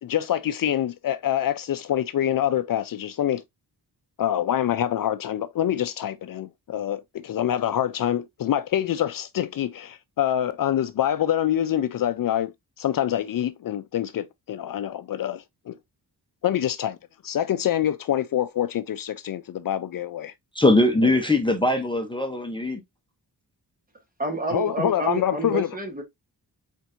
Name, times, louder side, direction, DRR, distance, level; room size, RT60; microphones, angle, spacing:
voice 1, 0.0-3.4 4.2-12.5 12.8-15.8 16.4-17.0 17.2-20.3 24.5-25.7, left 11 dB, 60° left, 0.5 m, -25 dB
voice 2, 20.5-22.8, left 2 dB, 15° left, 0.7 m, -21 dB
voice 3, 24.2-26.0, right 3 dB, 20° right, 1.2 m, -29 dB
4.4 x 4.4 x 2.5 m
wide cardioid pair, 165°, 39 cm